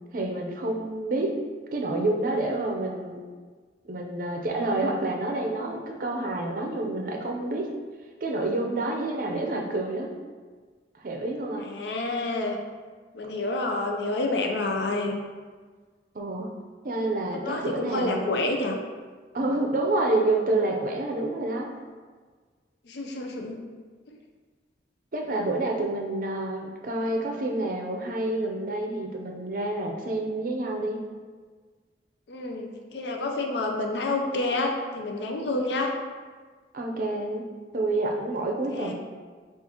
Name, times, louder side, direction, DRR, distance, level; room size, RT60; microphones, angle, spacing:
voice 1, 0.1-1.3 1.7-3.2 3.9-7.7 8.2-10.1 11.0-11.7 16.1-16.5 16.8-18.3 19.3-21.7 25.1-31.0 36.7-37.4 37.7-38.9, right 2 dB, 50° right, 2 dB, 0.5 m, -28 dB
voice 2, 11.6-12.6 13.1-15.2 17.3-18.8 22.9-23.6 32.3-35.9 38.7-38.9, left 2 dB, 65° left, 2 dB, 0.5 m, -29 dB
6.9 x 2.4 x 2.8 m, 1.5 s
head